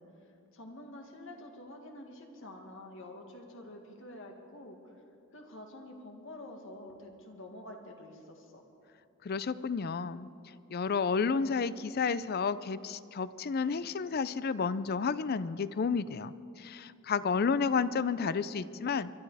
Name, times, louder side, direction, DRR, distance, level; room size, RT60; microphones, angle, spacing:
voice 1, 0.0-5.0 5.3-8.6, left 1 dB, 65° left, 3 dB, 2.0 m, -48 dB
voice 2, 9.2-10.3 10.7-19.1, left 5 dB, 45° left, 16 dB, 0.4 m, -31 dB
23.0 x 12.0 x 4.8 m, 2.7 s
head